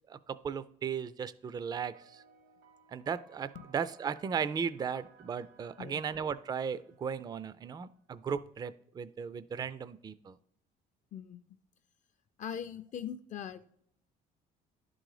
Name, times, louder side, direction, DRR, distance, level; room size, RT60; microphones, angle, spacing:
voice 1, 0.1-2.2 2.9-10.4, right 7 dB, 25° right, 15 dB, 0.3 m, -36 dB
sound 1, 1.9-7.7, right 6 dB, 90° right, 1.3 m, -62 dB
voice 2, 12.4-13.7, left 8 dB, 45° left, 10 dB, 0.5 m, -41 dB
11.0 x 3.9 x 4.8 m, 0.68 s
cardioid pair, 110°, 17 cm